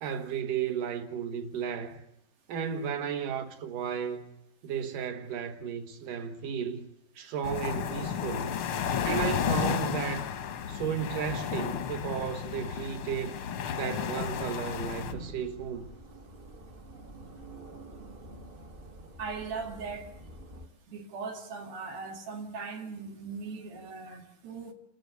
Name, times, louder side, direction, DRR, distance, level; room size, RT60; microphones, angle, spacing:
voice 1, 0.0-2.0 2.5-4.3 4.6-6.9 7.2-8.6 9.0-10.2 10.7-13.4 13.8-15.9, right 8 dB, 65° right, 3.0 m, -34 dB
sound 1, 7.4-15.1, left 8 dB, 65° left, 1.3 m, -32 dB
sound 2, 14.7-20.7, right 1 dB, 50° right, 0.6 m, -47 dB
voice 2, 19.2-20.1 20.9-24.7, right 4 dB, 85° right, 4.0 m, -39 dB
29.0 x 14.0 x 8.2 m
omnidirectional pair, 4.1 m